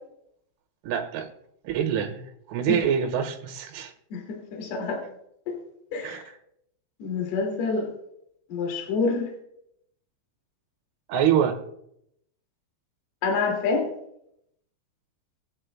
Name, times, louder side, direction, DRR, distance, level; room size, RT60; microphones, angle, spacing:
voice 1, 0.8-1.3 1.7-3.9 6.0-6.2 11.1-11.6, right 8 dB, 80° right, 3 dB, 3.7 m, -25 dB
voice 2, 4.5-5.0 5.5-5.6 5.9-6.3 7.0-7.9 8.5-9.3 13.2-13.9, left 4 dB, 60° left, 0 dB, 3.9 m, -27 dB
20.5 x 9.7 x 2.2 m, 0.75 s
omnidirectional pair, 5.7 m